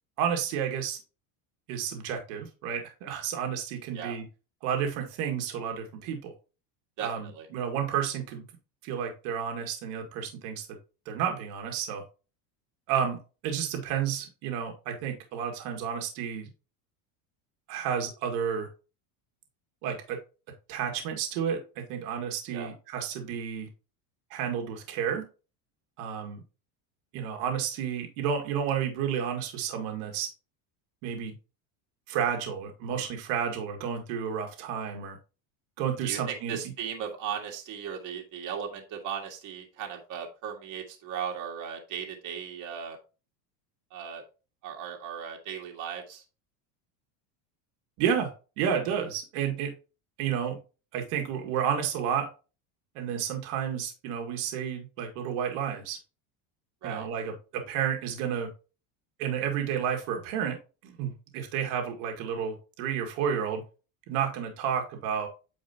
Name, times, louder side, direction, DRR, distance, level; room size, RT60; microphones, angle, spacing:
voice 1, 0.2-1.0 1.7-4.2 4.6-6.3 7.0-8.4 8.8-10.7 11.1-12.0 12.9-13.2 13.4-16.5 17.7-18.7 19.8-20.2 20.7-23.7 24.3-25.2 26.0-26.4 27.1-30.3 31.0-31.3 32.1-35.2 35.8-36.6 48.0-49.7 50.2-50.6 50.9-52.3 53.0-56.0 56.8-58.5 59.2-60.6 60.8-63.6 64.1-65.3, right 8 dB, 70° right, 3 dB, 2.0 m, -31 dB
voice 2, 7.0-7.5 22.5-22.7 36.0-43.0 43.9-44.2 44.6-46.2 56.8-57.1, right 8 dB, 40° right, 1 dB, 2.0 m, -37 dB
9.3 x 4.7 x 2.8 m, 0.32 s
cardioid pair, 155°, 44 cm